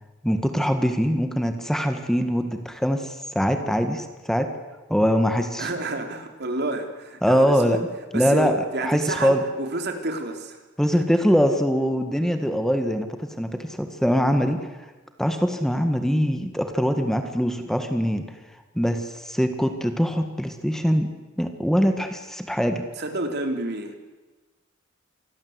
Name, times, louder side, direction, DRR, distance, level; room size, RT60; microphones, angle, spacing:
voice 1, 0.2-4.5 4.9-5.7 7.2-7.8 8.1-8.5 8.8-9.4 10.8-14.7 15.2-18.3 18.7-21.1 21.4-22.8, equal, ahead, 6 dB, 1.7 m, -23 dB
voice 2, 5.6-7.8 8.1-10.6 11.1-11.2 23.0-24.0, right 2 dB, 60° right, 5 dB, 3.6 m, -29 dB
27.0 x 21.0 x 8.1 m, 1.2 s
head